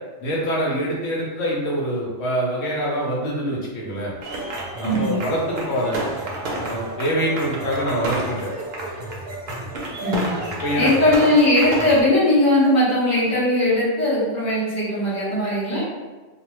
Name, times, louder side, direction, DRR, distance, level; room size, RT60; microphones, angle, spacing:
voice 1, 0.2-4.1 4.8-6.0 6.6-8.5 10.6-11.1, equal, 85° left, -3 dB, 1.1 m, -25 dB
sound 1, 4.2-12.0, right 1 dB, 60° right, 0.6 m, -30 dB
voice 2, 4.8-5.2 10.0-10.4 10.8-15.8, left 1 dB, 15° left, -9 dB, 0.8 m, -19 dB
2.4 x 2.1 x 3.0 m, 1.3 s
omnidirectional pair, 1.3 m